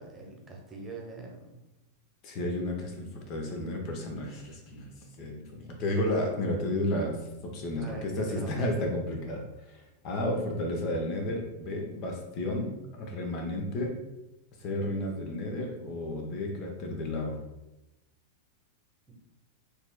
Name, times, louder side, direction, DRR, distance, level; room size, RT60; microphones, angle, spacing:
voice 1, 0.0-1.6 7.8-8.9 19.1-19.2, right 3 dB, 20° right, 0 dB, 0.9 m, -43 dB
voice 2, 2.2-4.9 5.2-7.2 7.4-14.0 14.6-17.4, left 1 dB, 40° left, 2 dB, 0.7 m, -32 dB
4.2 x 3.3 x 2.2 m, 0.95 s
figure-of-eight pair, 90°, 0 cm